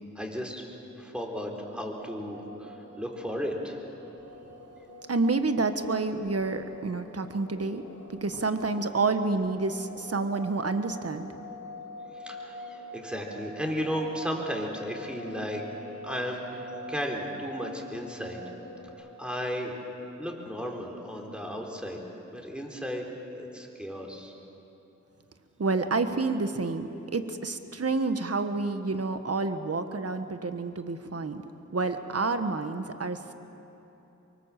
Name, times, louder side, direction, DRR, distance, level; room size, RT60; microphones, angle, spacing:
voice 1, 0.1-0.6 1.0-3.8 12.2-18.4 19.0-19.8 20.2-22.0 22.3-23.1 23.3-24.3, equal, 5° right, 1 dB, 4.3 m, -34 dB
sound 1, 1.5-18.9, equal, 60° left, 4.1 m, -45 dB
voice 2, 5.1-7.8 8.1-11.3 25.6-31.4 31.7-33.3, right 3 dB, 55° right, 8 dB, 1.4 m, -29 dB
24.5 x 23.5 x 7.5 m, 3.0 s
cardioid pair, 50°, 30 cm